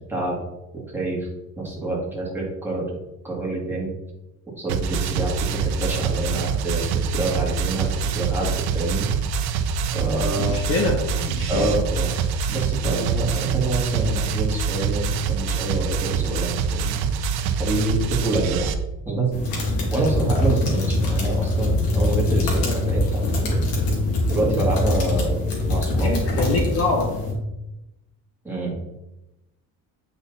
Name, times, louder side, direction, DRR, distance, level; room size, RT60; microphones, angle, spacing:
voice 1, 0.7-1.3 1.6-2.9 3.2-3.9 4.6-9.1 9.9-10.5 11.5-12.2 12.5-17.0 17.6-18.7 19.1-19.3 19.9-23.6 24.3-25.3 25.7-26.1 26.6-26.7 28.4-28.7, right 2 dB, 5° right, -5 dB, 2.4 m, -26 dB
sound 1, 4.7-18.7, right 6 dB, 80° right, 0.9 m, -25 dB
voice 2, 10.4-11.7 25.9-27.1, left 3 dB, 35° left, 1 dB, 1.2 m, -25 dB
sound 2, 19.3-27.3, left 1 dB, 65° left, 2.7 m, -23 dB
8.3 x 5.3 x 4.2 m, 0.94 s
cardioid pair, 165°, 38 cm